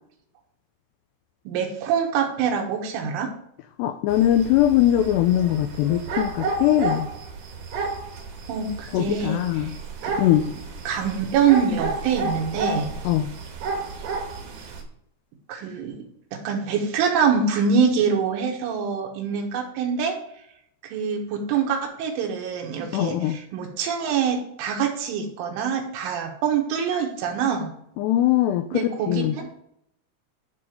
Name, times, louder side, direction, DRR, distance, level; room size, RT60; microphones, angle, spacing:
voice 1, 1.5-3.3 8.5-9.7 10.0-10.1 10.5-10.6 10.9-12.9 15.5-16.0 16.3-20.1 20.8-27.7 28.7-29.5, right 6 dB, 85° right, 2 dB, 3.9 m, -25 dB
voice 2, 3.8-7.1 8.9-9.7 10.2-10.5 13.1-13.3 22.9-23.4 28.0-29.4, left 12 dB, 85° left, 8 dB, 2.4 m, -21 dB
sound 1, 4.1-14.8, right 4 dB, 60° right, 2.2 m, -32 dB
12.0 x 4.0 x 5.1 m, 0.73 s
omnidirectional pair, 5.5 m